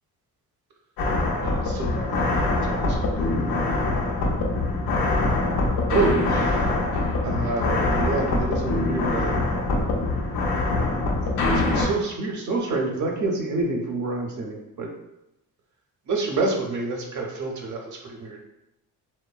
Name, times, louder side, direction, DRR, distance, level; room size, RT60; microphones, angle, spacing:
sound 1, 1.0-11.9, left 2 dB, 80° left, 0.6 m, -24 dB
voice 1, 1.4-2.2 2.6-3.5 5.9-6.8 7.2-9.4 11.2-14.9 16.1-18.4, right 3 dB, 55° right, 0 dB, 0.6 m, -28 dB
3.0 x 2.1 x 2.3 m, 0.88 s
cardioid pair, 105°, 36 cm